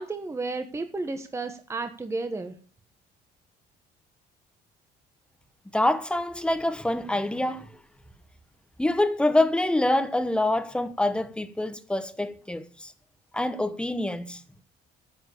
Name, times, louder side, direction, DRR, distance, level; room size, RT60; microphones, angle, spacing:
voice 1, 0.0-2.5, right 3 dB, 15° right, 1.2 m, -32 dB
voice 2, 5.7-7.8 8.8-12.9 13.3-14.4, left 1 dB, 5° left, 1.2 m, -26 dB
11.0 x 7.4 x 8.4 m
cardioid pair, 110°, 17 cm